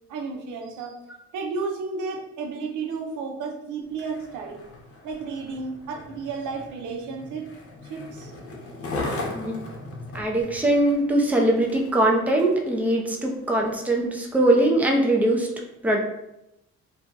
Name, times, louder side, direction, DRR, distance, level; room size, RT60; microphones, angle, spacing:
voice 1, 0.1-0.9 1.3-4.7 5.0-7.4 7.9-8.4, right 4 dB, 80° right, 3 dB, 0.6 m, -32 dB
Skateboard, 3.8-12.7 13.3-13.4, left 2 dB, 50° left, 0.8 m, -38 dB
voice 2, 10.1-15.5 15.8-16.0, right 1 dB, 5° right, 0 dB, 0.5 m, -21 dB
2.6 x 2.2 x 3.8 m, 0.86 s
cardioid pair, 90°, 30 cm